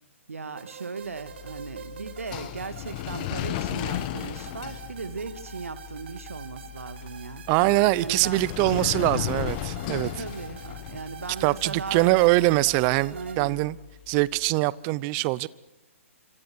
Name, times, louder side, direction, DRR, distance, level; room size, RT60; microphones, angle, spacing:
voice 1, 0.3-7.4 8.0-9.3 9.9-12.3 13.1-13.6, right 4 dB, 75° right, 2.4 m, -37 dB
sound 1, 0.6-13.4, right 8 dB, 50° right, 4.2 m, -46 dB
sound 2, 1.2-14.3, left 14 dB, 35° left, 1.5 m, -36 dB
voice 2, 7.5-10.1 11.4-13.8 14.1-15.5, right 20 dB, 30° right, 0.8 m, -23 dB
26.5 x 26.5 x 6.4 m
figure-of-eight pair, 125°, 8 cm